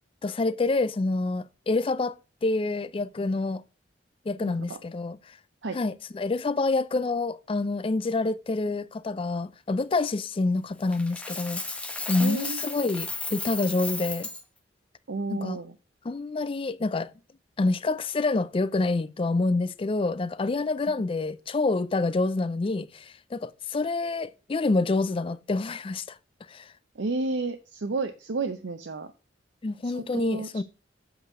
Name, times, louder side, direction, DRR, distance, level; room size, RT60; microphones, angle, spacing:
voice 1, 0.2-2.2 2.4-3.6 4.3-5.2 5.7-11.6 12.1-14.3 15.3-15.6 16.0-17.1 17.6-26.2 26.5-26.7 29.6-30.6, left 3 dB, 30° left, 0.4 m, -27 dB
voice 2, 4.4-4.8 5.6-5.8 12.2-12.6 15.1-15.7 27.0-29.1 29.8-30.6, right 3 dB, 75° right, 0.6 m, -32 dB
Coin (dropping), 10.9-14.4, left 2 dB, 5° left, 0.9 m, -34 dB
7.9 x 4.0 x 6.1 m
head